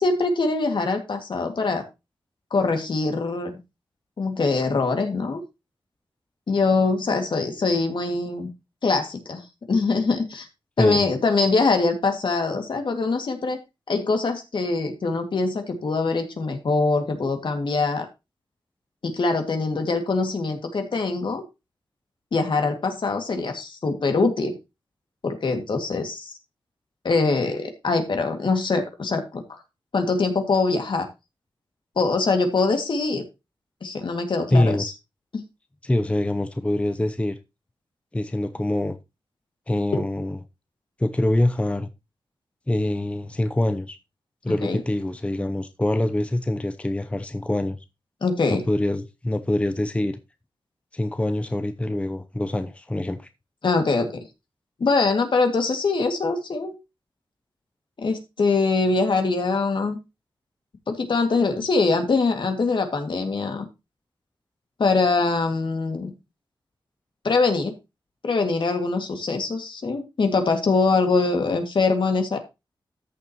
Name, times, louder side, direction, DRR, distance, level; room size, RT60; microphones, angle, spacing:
voice 1, 0.0-1.8 2.5-3.5 4.2-5.4 6.5-8.5 8.8-10.5 10.8-13.6 13.9-18.1 19.0-21.4 22.3-24.5 25.2-26.3 27.0-29.4 29.9-31.1 32.0-33.2 33.8-34.9 44.5-44.8 48.2-48.6 53.6-54.2 54.8-56.7 58.0-60.0 60.9-63.7 64.8-66.1 67.2-67.7 68.2-72.4, left 3 dB, 65° left, 2.1 m, -23 dB
voice 2, 34.5-34.9 35.8-37.4 38.1-39.0 39.7-40.4 41.0-41.9 42.7-44.0 44.4-47.8 48.5-50.2 50.9-53.3, left 1 dB, 15° left, 0.6 m, -24 dB
13.5 x 7.0 x 3.0 m
wide cardioid pair, 85°, 9 cm